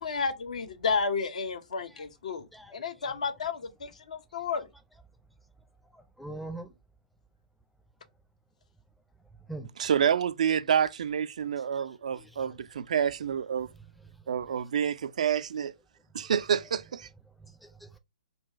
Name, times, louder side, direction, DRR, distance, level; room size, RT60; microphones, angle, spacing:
voice 1, 0.0-2.5 2.7-4.7, left 5 dB, 60° left, 0.8 m, -32 dB
voice 2, 5.9-6.7 9.5-9.7 12.2-12.3 14.5-14.6 16.6-16.7 17.4-18.0, right 2 dB, ahead, 0.5 m, -42 dB
voice 3, 9.8-13.7 14.3-15.7 16.1-17.1, right 8 dB, 60° right, 0.4 m, -28 dB
3.9 x 2.3 x 4.4 m
figure-of-eight pair, 125°, 4 cm